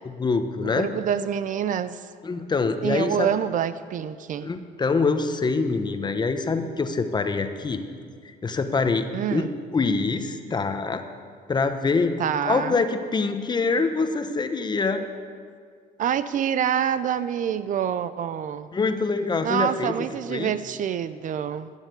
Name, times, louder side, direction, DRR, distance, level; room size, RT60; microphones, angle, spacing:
voice 1, 0.0-0.9 2.2-3.3 4.4-7.8 8.4-9.5 9.7-11.0 11.5-12.1 12.4-15.1 18.7-19.9 20.3-20.5, left 4 dB, 25° left, 8 dB, 1.0 m, -25 dB
voice 2, 0.8-2.0 2.8-4.5 9.1-9.5 12.2-12.8 16.0-18.7 19.4-21.7, right 9 dB, 50° right, 14 dB, 0.5 m, -26 dB
12.5 x 7.3 x 8.1 m, 2.1 s
cardioid pair, 110°, 17 cm